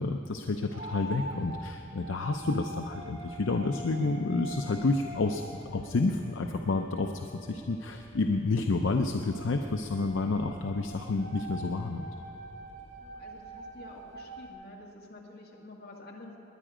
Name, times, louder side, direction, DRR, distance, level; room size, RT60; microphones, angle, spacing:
voice 1, 0.0-5.4 5.7-7.1 7.5-12.1, left 3 dB, 70° left, 4 dB, 0.6 m, -29 dB
sound 1, 0.7-14.5, right 1 dB, 90° right, 2.9 m, -45 dB
voice 2, 13.0-16.4, left 2 dB, 55° left, -2 dB, 2.0 m, -49 dB
20.5 x 10.0 x 5.0 m, 2.8 s
head